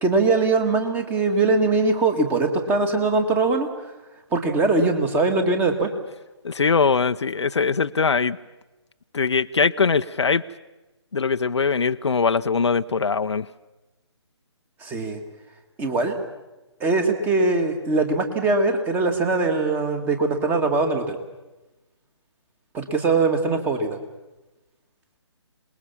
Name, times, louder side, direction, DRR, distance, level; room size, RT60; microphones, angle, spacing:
voice 1, 0.0-3.7 4.3-5.9 14.8-15.2 15.8-16.2 16.8-21.2 22.7-24.0, right 3 dB, 10° right, 7 dB, 1.9 m, -21 dB
voice 2, 6.4-8.4 9.1-10.4 11.1-13.5, left 5 dB, 70° left, 10 dB, 0.7 m, -21 dB
27.0 x 20.5 x 7.1 m, 1.1 s
figure-of-eight pair, 150°, 15 cm